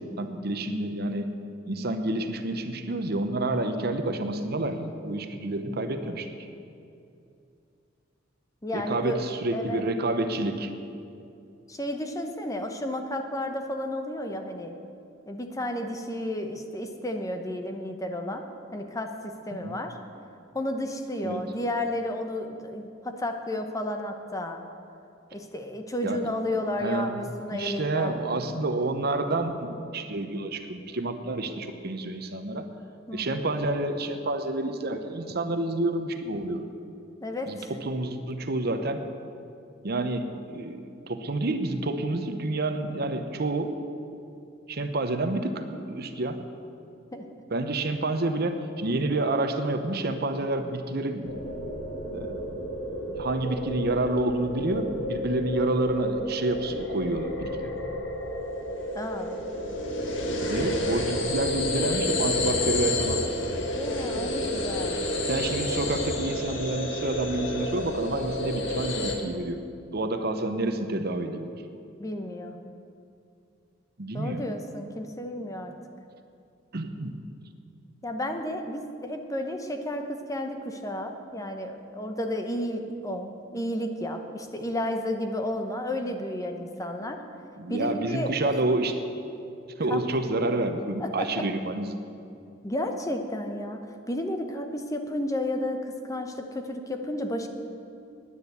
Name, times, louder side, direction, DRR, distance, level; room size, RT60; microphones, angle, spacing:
voice 1, 0.2-1.3 1.7-6.3 8.7-10.7 19.6-19.8 21.2-21.4 26.0-26.2 26.8-32.7 33.1-36.7 37.5-39.0 39.8-43.7 44.7-46.4 47.5-51.4 52.1-52.7 53.1-57.7 60.5-63.2 65.2-69.6 69.9-71.5 74.0-74.4 76.7-77.1 87.6-88.9 89.8-91.9, right 2 dB, 55° right, 7 dB, 0.9 m, -29 dB
voice 2, 8.6-9.2 9.5-9.8 11.7-14.7 15.3-18.4 18.7-20.0 20.5-24.6 25.3-28.2 33.1-33.4 37.2-37.7 47.1-47.3 58.9-59.4 63.7-65.1 72.0-72.6 74.1-75.7 78.0-87.2 87.7-88.6 89.9-90.0 91.0-91.5 92.6-93.8 94.1-97.5, left 1 dB, 20° left, 5 dB, 0.9 m, -32 dB
sound 1, 51.2-69.1, left 1 dB, 75° left, 1.5 m, -30 dB
10.0 x 9.6 x 8.1 m, 2.6 s
head